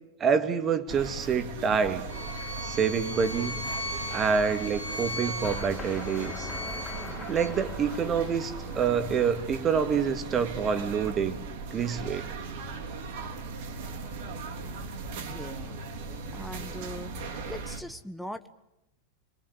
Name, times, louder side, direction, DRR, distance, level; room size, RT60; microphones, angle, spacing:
voice 1, 0.2-2.0 2.6-3.6 4.1-6.5 7.3-11.4 11.7-12.3, right 6 dB, 25° right, 9 dB, 2.4 m, -27 dB
sound 1, 0.9-17.8, right 3 dB, 50° right, 3.2 m, -38 dB
Bowed string instrument, 2.1-7.5, left 1 dB, 90° left, 5.6 m, -37 dB
sound 2, 5.4-10.4, left 5 dB, 20° left, 1.8 m, -44 dB
voice 2, 15.2-15.8 16.3-17.1 17.5-18.5, equal, ahead, 8 dB, 1.5 m, -40 dB
30.0 x 22.5 x 6.7 m, 0.85 s
figure-of-eight pair, 90°, 0 cm